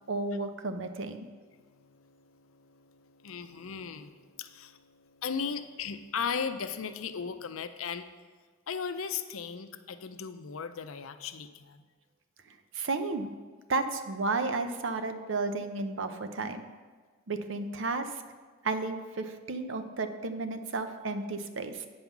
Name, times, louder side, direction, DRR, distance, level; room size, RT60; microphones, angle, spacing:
voice 1, 0.1-1.3 12.5-13.3 13.7-16.6 17.3-18.2 18.6-21.9, right 3 dB, 65° right, 8 dB, 0.7 m, -33 dB
voice 2, 1.5-8.0 8.7-11.9, left 6 dB, 90° left, 10 dB, 0.6 m, -37 dB
8.7 x 5.5 x 6.0 m, 1.5 s
head